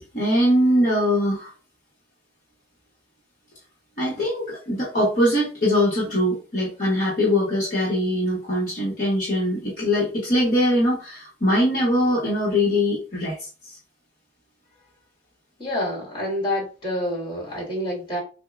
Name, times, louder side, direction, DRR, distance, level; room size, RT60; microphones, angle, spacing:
voice 1, 0.1-1.5 4.0-13.8, left 1 dB, 45° left, 1.0 m, -22 dB
voice 2, 15.6-18.2, left 1 dB, 25° left, 1.7 m, -27 dB
6.3 x 2.1 x 2.4 m
head